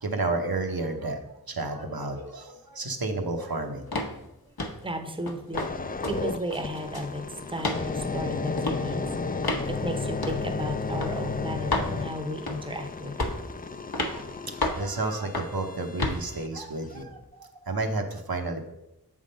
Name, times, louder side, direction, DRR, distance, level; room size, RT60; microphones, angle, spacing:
voice 1, 0.0-1.2 1.5-3.9 14.0-14.3 14.6-18.7, right 2 dB, 70° right, 4 dB, 0.9 m, -31 dB
sound 1, 3.9-4.2 4.6-4.8 5.3-5.7 6.0-6.2 6.5-7.1 7.6-7.8 8.6-8.8 9.4-9.7 10.2-10.4 11.0-11.1 11.7-11.9 12.5-12.7 13.2-13.5 13.9-14.2 14.6-14.9 15.3-15.6 16.0-16.2, left 2 dB, 70° left, 0.9 m, -29 dB
voice 2, 4.8-5.6 6.1-9.1 9.7-13.3, equal, 15° right, 6 dB, 0.7 m, -34 dB
sound 2, 5.5-16.5 17.0-17.2, left 4 dB, 25° left, 0.4 m, -33 dB
7.5 x 3.7 x 5.1 m, 0.88 s
wide cardioid pair, 45°, 38 cm